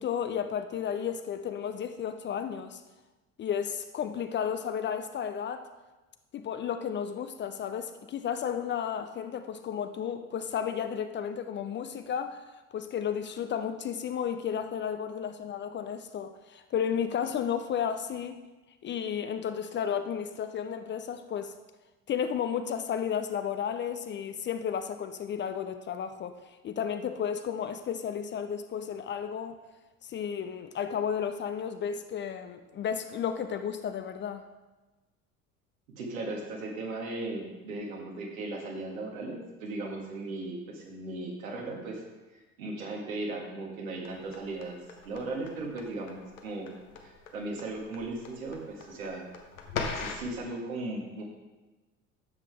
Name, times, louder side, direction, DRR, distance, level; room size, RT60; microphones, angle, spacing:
voice 1, 0.0-2.8 3.4-5.7 6.3-12.4 12.7-18.4 18.8-21.5 22.1-26.4 26.6-29.6 30.0-34.4, left 8 dB, 25° left, 9 dB, 0.5 m, -33 dB
voice 2, 36.0-42.0 42.6-44.8 45.0-46.7 47.0-49.3 50.0-51.2, right 2 dB, 70° right, -1 dB, 2.0 m, -37 dB
sound 1, 44.0-50.3, left 5 dB, 75° left, 1.1 m, -40 dB
10.5 x 7.4 x 3.4 m, 1.2 s
figure-of-eight pair, 60°, 42 cm